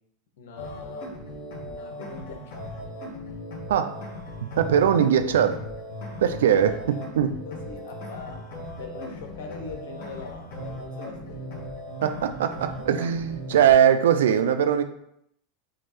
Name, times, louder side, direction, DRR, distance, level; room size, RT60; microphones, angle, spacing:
voice 1, 0.4-1.1 1.6-2.8 5.0-5.6 6.2-8.4 8.8-11.7, left 4 dB, 75° left, 3 dB, 1.3 m, -42 dB
sound 1, 0.6-13.7, left 1 dB, 60° left, 2.7 m, -38 dB
voice 2, 4.6-5.5 6.2-7.3 12.0-14.8, right 9 dB, 80° right, 9 dB, 0.6 m, -21 dB
7.8 x 3.2 x 4.4 m, 0.74 s
hypercardioid pair, 105°, 0 cm